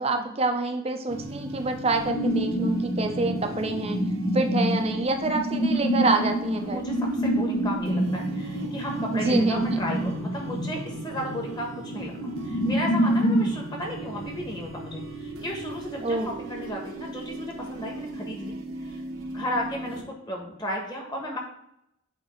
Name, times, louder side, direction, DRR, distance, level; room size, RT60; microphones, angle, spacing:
voice 1, 0.0-4.0 4.3-6.8 9.1-9.8 16.0-16.3, right 2 dB, 30° right, 5 dB, 0.6 m, -27 dB
sound 1, 1.1-20.0, right 2 dB, 75° right, 1.1 m, -38 dB
sound 2, 2.1-13.5, right 1 dB, 55° left, 0.8 m, -27 dB
voice 2, 6.6-18.6 18.8-19.0 19.3-21.4, left 1 dB, 20° left, 0 dB, 1.3 m, -34 dB
8.3 x 2.9 x 4.4 m, 0.76 s
head